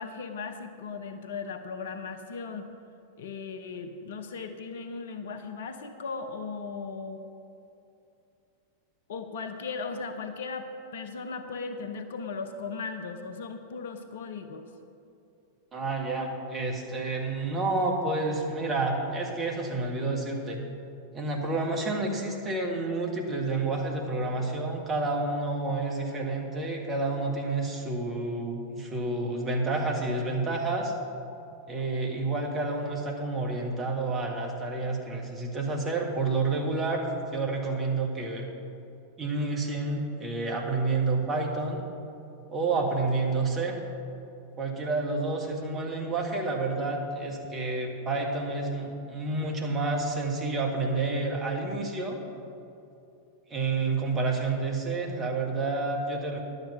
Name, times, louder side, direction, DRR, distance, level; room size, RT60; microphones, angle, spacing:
voice 1, 0.0-2.7 3.2-7.2 9.1-14.7, left 4 dB, 60° left, 8 dB, 0.7 m, -37 dB
voice 2, 15.7-20.6 21.1-30.9 31.7-37.0 37.3-38.5 39.2-41.8 42.5-43.8 44.6-52.2 53.5-56.4, right 3 dB, 25° right, 0 dB, 1.7 m, -29 dB
11.0 x 8.1 x 5.7 m, 2.7 s
figure-of-eight pair, 90°, 0 cm